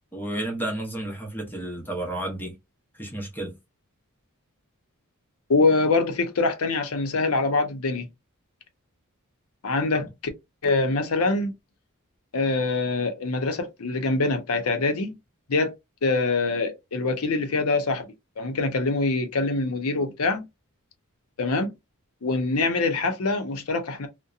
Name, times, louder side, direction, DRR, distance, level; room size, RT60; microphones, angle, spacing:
voice 1, 0.1-2.6 3.0-3.6, right 1 dB, 10° left, 0.8 m, -31 dB
voice 2, 5.5-8.1 9.6-10.1 10.6-11.5 12.3-15.2 15.5-15.7 16.0-18.1 18.4-20.5 21.4-21.7 22.2-24.1, left 3 dB, 75° left, 0.7 m, -24 dB
2.7 x 2.1 x 2.4 m
head